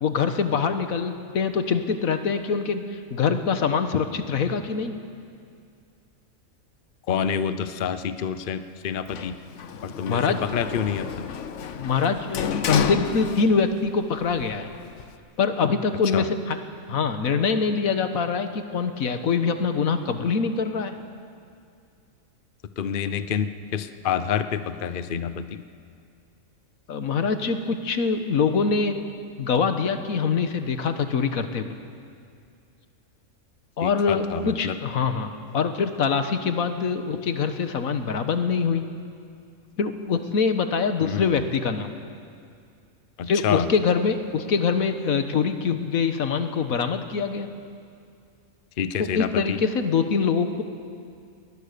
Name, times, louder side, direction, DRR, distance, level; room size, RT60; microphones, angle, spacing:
voice 1, 0.0-4.9 10.1-10.4 11.7-14.7 15.4-16.6 16.9-20.9 26.9-29.0 29.4-31.7 33.8-38.8 39.8-41.9 43.3-47.5 49.1-50.6, left 5 dB, 85° left, 8 dB, 1.6 m, -24 dB
voice 2, 7.1-9.4 9.8-11.3 16.1-16.3 22.8-25.6 33.8-34.8 41.0-41.5 43.2-43.7 48.8-49.6, left 7 dB, 45° left, 11 dB, 0.8 m, -28 dB
Sliding door, 9.1-13.9 14.2-15.2, left 7 dB, 65° left, 1.1 m, -31 dB
21.5 x 19.5 x 6.8 m, 2.3 s
omnidirectional pair, 1.4 m